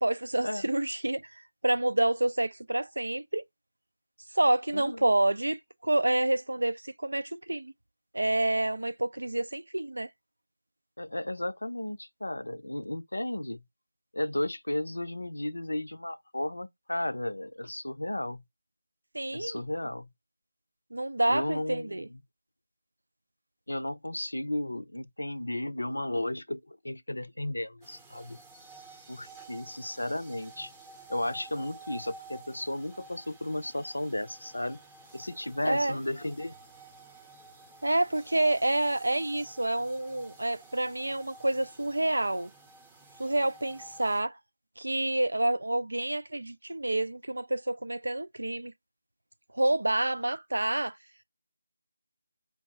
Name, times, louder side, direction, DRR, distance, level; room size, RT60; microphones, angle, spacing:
voice 1, 0.0-3.4 4.3-7.7 8.1-10.1 19.1-19.6 20.9-22.1 35.6-36.0 37.8-42.5 43.2-44.4 44.8-48.7 49.5-51.0, right 1 dB, 75° right, 0.4 m, -28 dB
voice 2, 4.7-5.0 11.0-13.6 14.1-18.4 19.3-20.1 21.3-22.2 23.7-28.4 29.1-30.7 31.1-34.8 35.1-36.5, left 1 dB, 75° left, 0.5 m, -34 dB
sound 1, 27.8-44.2, right 2 dB, 10° right, 0.7 m, -52 dB
4.6 x 2.3 x 2.8 m
figure-of-eight pair, 160°, 0 cm